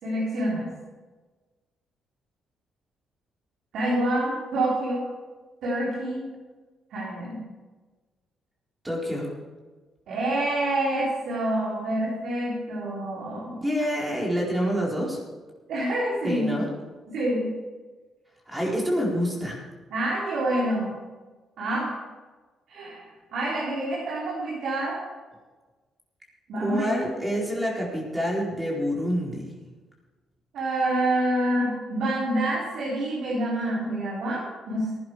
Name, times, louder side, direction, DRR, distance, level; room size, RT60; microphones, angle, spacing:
voice 1, 0.0-0.7 3.7-5.0 5.6-6.2 6.9-7.4 10.1-13.6 15.7-16.5 17.1-17.5 19.9-20.9 21.6-21.9 22.7-25.0 26.5-26.9 30.5-34.9, right 1 dB, 75° right, -6 dB, 4.6 m, -27 dB
voice 2, 8.8-9.3 13.6-15.2 16.2-16.7 18.5-19.6 26.6-29.5, equal, 10° right, -3 dB, 4.4 m, -27 dB
16.0 x 11.0 x 4.9 m, 1.3 s
cardioid pair, 90°, 0 cm